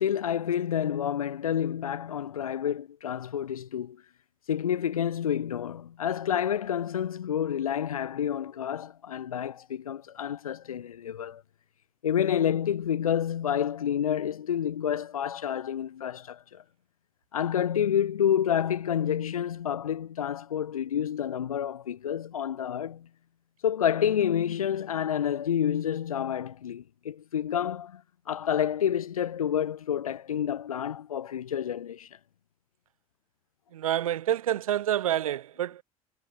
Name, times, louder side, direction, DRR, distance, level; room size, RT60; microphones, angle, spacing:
voice 1, 0.0-4.0 4.5-11.4 12.0-16.6 17.3-23.1 23.6-28.0 28.3-32.1, left 9 dB, 75° left, 7.1 m, -29 dB
voice 2, 33.7-35.8, right 12 dB, 70° right, 7.9 m, -28 dB
figure-of-eight pair, 65°, 18 cm